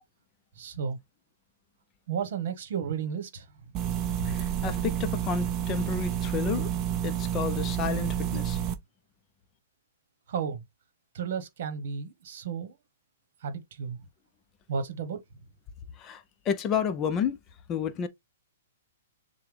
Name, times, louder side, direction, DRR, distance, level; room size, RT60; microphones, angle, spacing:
voice 1, 0.6-1.0 2.1-3.5 10.3-10.6 11.1-12.7 13.4-14.0 14.7-15.2, right 6 dB, 55° right, 1.2 m, -33 dB
sound 1, 3.7-8.7, right 10 dB, 25° right, 0.5 m, -29 dB
voice 2, 4.2-6.7 7.0-8.6 16.0-17.4 17.7-18.1, left 7 dB, 20° left, 0.6 m, -31 dB
6.7 x 2.3 x 3.3 m
hypercardioid pair, 155°, 0 cm